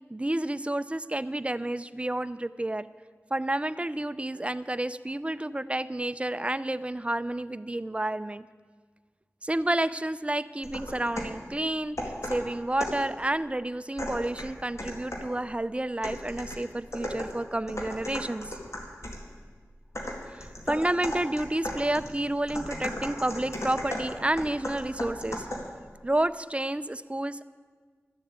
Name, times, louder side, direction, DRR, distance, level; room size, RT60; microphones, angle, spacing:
voice 1, 0.1-2.9 3.3-8.4 9.4-18.6 20.3-25.5 26.0-27.4, right 1 dB, 20° right, 15 dB, 0.4 m, -30 dB
sound 1, 10.6-11.4 12.0-13.1 14.0-15.4 16.0-19.3 19.9-25.8, left 1 dB, 65° left, 2.2 m, -36 dB
13.0 x 7.3 x 8.7 m, 1.5 s
wide cardioid pair, 45°, 5 cm